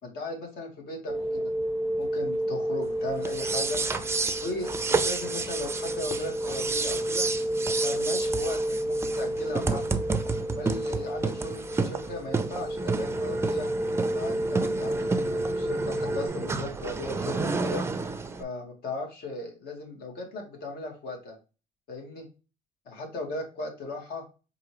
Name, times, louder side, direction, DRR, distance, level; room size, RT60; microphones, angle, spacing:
voice 1, 0.0-1.5 2.0-3.8 4.4-7.3 7.7-10.0 10.5-13.7 14.1-17.8 18.4-21.4 21.9-22.3 22.8-24.2, left 2 dB, 65° left, 0 dB, 1.7 m, -37 dB
sound 1, 1.1-16.3, right 1 dB, 35° left, 1.7 m, -31 dB
sound 2, 3.2-18.4, right 4 dB, 15° right, 0.4 m, -31 dB
4.9 x 2.7 x 3.0 m, 0.33 s
cardioid pair, 110°, 17 cm